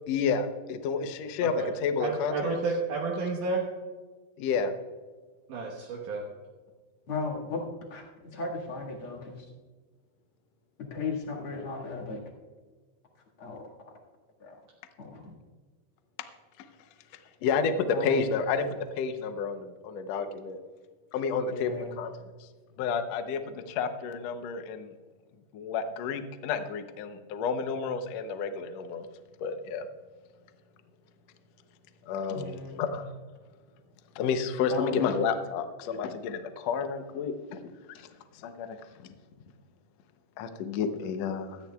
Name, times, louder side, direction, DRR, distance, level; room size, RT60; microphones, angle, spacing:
voice 1, 0.1-2.8 4.4-4.7 17.4-18.7 19.0-20.6 21.1-22.1 22.4-22.5 22.8-24.9 25.5-29.1 29.4-29.9 32.0-33.1 34.1-37.6 37.9-38.1 38.3-38.8 40.4-41.6, left 5 dB, 80° left, 8 dB, 1.5 m, -30 dB
voice 2, 2.0-3.6 5.5-6.2, right 4 dB, 70° right, -2 dB, 2.5 m, -31 dB
voice 3, 7.1-7.6 7.9-9.5 10.8-12.2 13.4-13.6 14.4-14.6 15.0-15.3 17.9-18.6 21.5-22.0 32.3-33.0 34.7-35.1, left 3 dB, 45° left, -2 dB, 2.2 m, -36 dB
18.0 x 13.5 x 2.3 m, 1.4 s
omnidirectional pair, 4.1 m